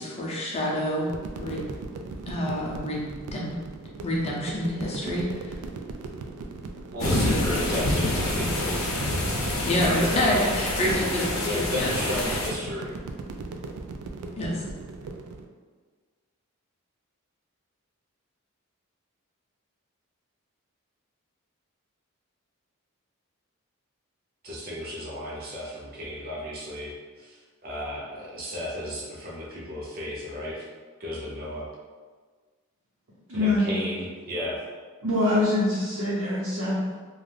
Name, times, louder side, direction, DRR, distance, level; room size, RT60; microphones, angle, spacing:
voice 1, 0.0-1.6 2.3-3.0 3.3-3.5 4.0-5.5 7.8-8.5 9.6-11.9 12.2-12.4 14.4-14.6, left 1 dB, 30° left, -3 dB, 0.5 m, -28 dB
sound 1, 1.1-15.4, right 3 dB, 90° right, 0.3 m, -38 dB
voice 2, 6.9-8.5 8.8-10.5 11.4-13.0 24.4-26.9 27.2-30.7 31.0-31.7 33.3-34.6, left 1 dB, 40° right, -4 dB, 0.6 m, -34 dB
sound 2, 7.0-12.5, left 1 dB, 75° left, 0.6 m, -27 dB
voice 3, 33.3-33.6 35.0-36.9, left 2 dB, 70° right, -11 dB, 0.9 m, -24 dB
2.4 x 2.3 x 3.3 m, 1.5 s
head